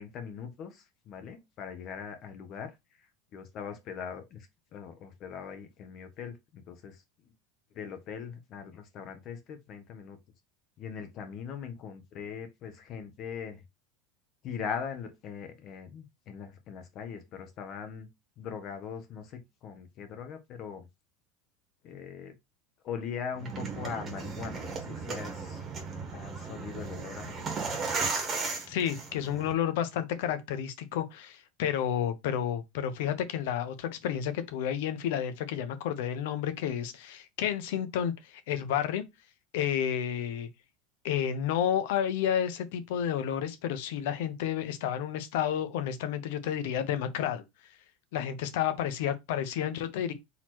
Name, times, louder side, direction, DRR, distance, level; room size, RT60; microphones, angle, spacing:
voice 1, 0.0-7.0 7.7-10.2 10.8-13.6 14.4-18.1 18.4-20.9 21.8-22.3 22.8-25.7 26.1-27.8, left 7 dB, 40° left, 0.9 m, -41 dB
sound 1, 23.4-29.5, right 4 dB, 25° right, 1.3 m, -35 dB
voice 2, 28.7-39.0 39.5-40.5 41.0-47.4 48.1-50.1, left 9 dB, 75° left, 0.9 m, -31 dB
4.1 x 3.0 x 4.3 m
supercardioid pair, 150°, 0 cm